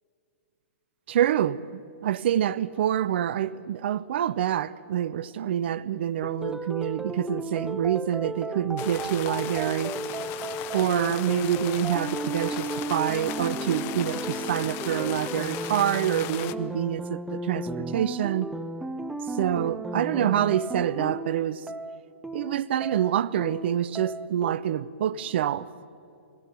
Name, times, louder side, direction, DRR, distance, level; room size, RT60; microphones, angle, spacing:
voice 1, 1.1-10.0 10.7-18.5 19.3-21.7 22.3-25.7, right 10 dB, 55° right, 0.6 m, -27 dB
sound 1, 6.2-24.5, right 2 dB, 5° right, 0.7 m, -34 dB
sound 2, 8.8-16.5, left 14 dB, 35° left, 0.7 m, -37 dB
21.0 x 16.5 x 9.3 m
figure-of-eight pair, 120°, 7 cm